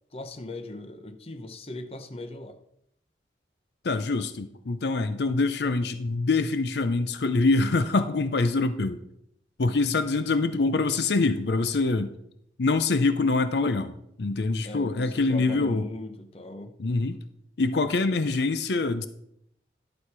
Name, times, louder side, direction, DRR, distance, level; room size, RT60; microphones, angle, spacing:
voice 1, 0.1-2.6 14.6-16.7, left 2 dB, 35° left, 0.7 m, -39 dB
voice 2, 3.8-9.0 9.6-12.1 12.6-13.9 14.2-15.9 16.8-17.2 17.6-19.1, left 3 dB, 70° left, 0.6 m, -25 dB
11.5 x 6.3 x 4.7 m
head